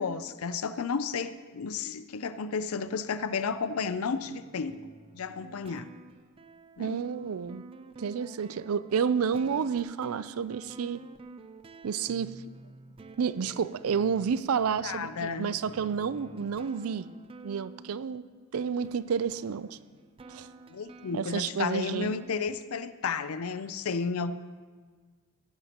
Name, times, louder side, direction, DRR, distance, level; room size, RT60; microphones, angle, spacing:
voice 1, 0.0-4.8 5.1-5.9 6.8-7.0 14.8-15.5 20.7-24.3, left 5 dB, 85° left, 13 dB, 0.5 m, -32 dB
sound 1, 2.7-22.6, right 3 dB, 25° right, 0.4 m, -50 dB
voice 2, 6.8-7.6 8.0-11.0 11.8-12.3 13.2-17.1 17.4-18.2 18.5-19.8 20.3-20.5 21.1-22.1, right 6 dB, 90° right, 16 dB, 0.4 m, -30 dB
17.0 x 10.5 x 2.9 m, 1.5 s
head